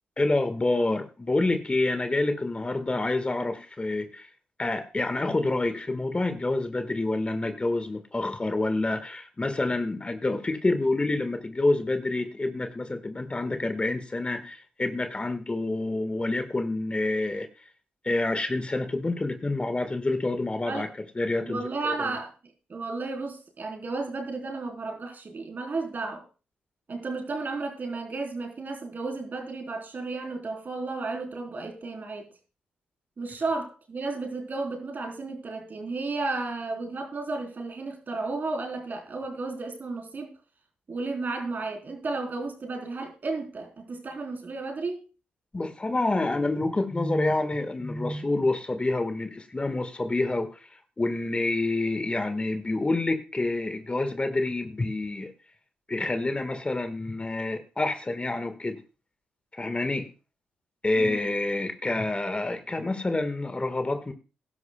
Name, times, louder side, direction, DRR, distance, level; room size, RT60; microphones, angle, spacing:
voice 1, 0.2-4.3 4.6-17.5 18.0-20.9 21.1-22.1 45.5-55.3 55.9-58.8 59.5-60.1 60.8-64.1, left 2 dB, 25° left, 8 dB, 1.5 m, -28 dB
voice 2, 21.4-22.3 22.7-26.2 26.9-32.3 33.2-40.3 40.9-45.0 60.9-61.3, right 3 dB, 45° right, 3 dB, 3.7 m, -33 dB
17.5 x 11.0 x 2.2 m, 0.32 s
hypercardioid pair, 45°, 4 cm